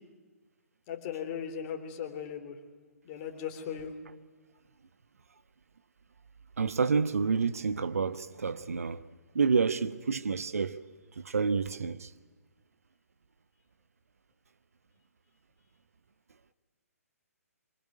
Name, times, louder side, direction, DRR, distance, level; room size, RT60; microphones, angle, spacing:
voice 1, 0.9-2.6 3.0-3.9, left 8 dB, 30° left, 3.8 m, -37 dB
voice 2, 6.6-9.0 9.3-10.8 11.2-12.1, right 5 dB, 65° right, 1.2 m, -28 dB
25.0 x 24.5 x 9.5 m
figure-of-eight pair, 130°, 8 cm